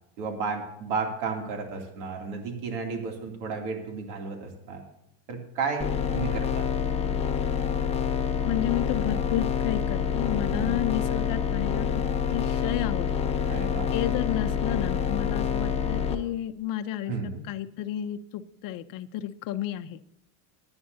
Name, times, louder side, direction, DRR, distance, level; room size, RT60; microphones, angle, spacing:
voice 1, 0.2-4.8 5.3-6.7 10.5-10.9 13.5-13.9 17.1-17.4, right 4 dB, 70° right, 2 dB, 2.9 m, -33 dB
sound 1, 5.8-16.1, left 7 dB, 15° left, 0.9 m, -27 dB
voice 2, 8.4-11.9 12.3-13.6 13.9-17.1 17.5-20.0, left 12 dB, 45° left, 10 dB, 0.8 m, -31 dB
21.0 x 9.7 x 2.8 m, 0.82 s
cardioid pair, 140°, 48 cm